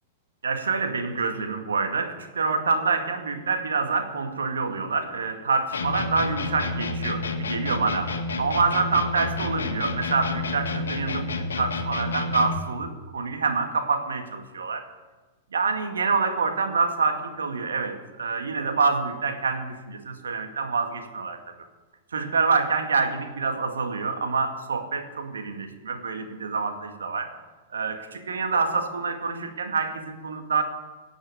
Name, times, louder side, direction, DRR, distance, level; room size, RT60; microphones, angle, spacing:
voice 1, 0.4-14.9 15.5-21.4 22.1-27.3 27.7-30.6, right 4 dB, 75° right, 5 dB, 1.8 m, -26 dB
sound 1, 5.7-12.7, left 3 dB, 75° left, 1.4 m, -30 dB
16.5 x 6.3 x 9.1 m, 1.2 s
figure-of-eight pair, 100°, 0 cm